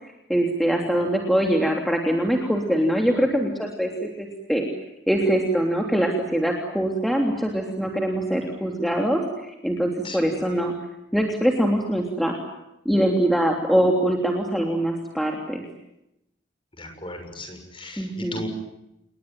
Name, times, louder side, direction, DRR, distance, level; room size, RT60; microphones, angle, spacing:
voice 1, 0.0-4.7 5.1-10.7 11.1-12.3 12.8-15.6 18.0-18.4, right 1 dB, ahead, 1 dB, 3.1 m, -23 dB
voice 2, 16.8-18.5, left 2 dB, 30° left, 6 dB, 6.8 m, -36 dB
29.0 x 21.5 x 9.2 m, 0.87 s
head